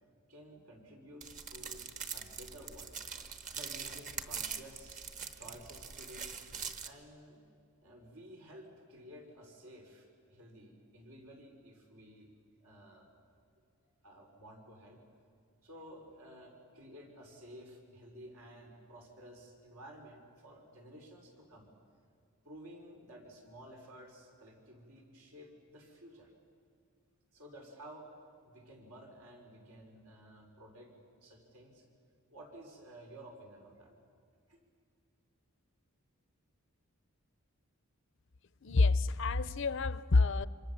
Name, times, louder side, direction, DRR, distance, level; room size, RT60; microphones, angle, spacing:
voice 1, 0.3-1.9 2.1-2.9 3.5-5.1 5.4-6.4 6.8-7.4 7.8-12.3 12.6-13.2 13.8-15.0 15.6-21.7 22.4-26.3 27.3-28.1 28.4-31.8 32.3-34.0 34.5-34.6, equal, 80° right, 1 dB, 5.4 m, -53 dB
sound 1, 1.2-6.9, right 6 dB, 35° right, 1.2 m, -43 dB
voice 2, 38.6-40.5, left 3 dB, 55° left, 16 dB, 0.6 m, -28 dB
27.0 x 25.5 x 7.4 m, 2.2 s
head